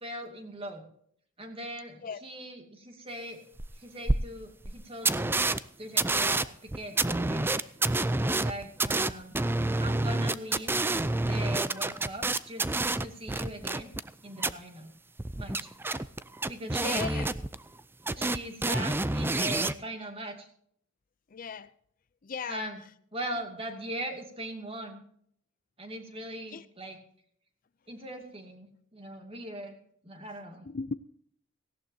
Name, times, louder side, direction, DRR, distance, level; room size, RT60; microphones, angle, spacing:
voice 1, 0.0-0.9 1.4-3.4 3.7-5.3 5.8-7.7 8.2-9.4 9.8-10.8 11.2-12.7 13.0-13.9 14.2-14.9 15.4-15.7 16.5-17.3 18.2-20.5 22.5-22.8 23.1-25.0 25.8-27.0 27.9-29.8 30.0-30.7, right 1 dB, 30° right, 4 dB, 2.4 m, -40 dB
sound 1, 3.6-3.7 4.1-4.2 4.6-4.7 5.0-5.6 6.0-14.1 14.4-14.5 15.2-17.8 18.1-19.7, right 2 dB, 10° right, 0.4 m, -28 dB
voice 2, 16.6-17.3 18.1-18.5 21.3-21.7 22.2-22.6 26.5-26.7 30.6-31.0, left 5 dB, 45° left, 15 dB, 0.5 m, -37 dB
18.0 x 16.5 x 2.8 m, 0.65 s
head